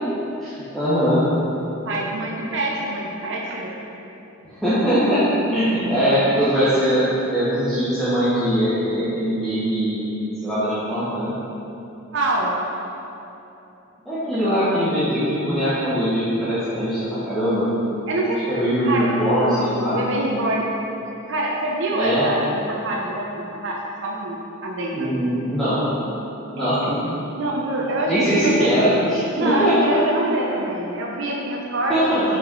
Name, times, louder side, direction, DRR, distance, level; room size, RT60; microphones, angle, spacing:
voice 1, 0.4-1.3 4.4-5.2 5.5-10.0 10.4-11.3 14.0-17.6 18.5-20.0 21.9-22.3 24.9-25.9 26.5-27.0 28.1-29.8 31.9-32.2, equal, ahead, -14 dB, 1.3 m, -21 dB
voice 2, 1.9-3.7 12.1-12.5 14.3-14.6 18.1-18.4 18.8-19.1 19.9-20.7 21.3-25.1 26.6-26.9 27.3-28.1 28.4-28.7 29.4-32.2, right 1 dB, 60° right, -2 dB, 0.8 m, -25 dB
5.6 x 5.0 x 5.4 m, 2.9 s
head